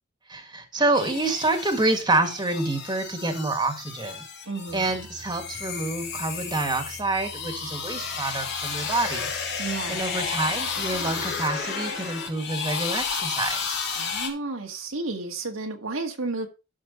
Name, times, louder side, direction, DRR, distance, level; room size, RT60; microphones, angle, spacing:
voice 1, 0.3-4.2 4.7-9.3 9.9-13.8, right 2 dB, 20° right, 1.9 m, -27 dB
sound 1, 0.9-14.3, left 5 dB, 55° left, 3.0 m, -32 dB
voice 2, 4.5-4.9 9.6-10.0 14.0-16.5, right 3 dB, 75° right, 1.8 m, -32 dB
sound 2, 4.7-11.5, left 1 dB, 75° left, 2.7 m, -48 dB
12.0 x 6.5 x 4.3 m
head